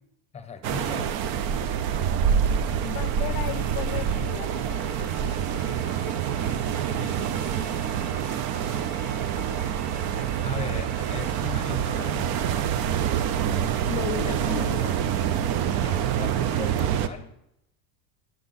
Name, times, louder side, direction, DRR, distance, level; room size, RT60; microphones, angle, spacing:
voice 1, 0.3-1.2 7.0-8.6 10.4-12.5 14.2-14.8 15.7-17.3, left 5 dB, 15° left, 8 dB, 0.8 m, -39 dB
sound 1, 0.6-17.1, right 9 dB, 55° right, 0.7 m, -26 dB
Bowed string instrument, 2.6-11.7, right 2 dB, 25° right, 3.5 m, -44 dB
voice 2, 2.8-4.9 13.9-14.9, left 15 dB, 50° left, 13 dB, 0.5 m, -35 dB
9.0 x 6.7 x 4.0 m, 0.82 s
supercardioid pair, 120°, 46 cm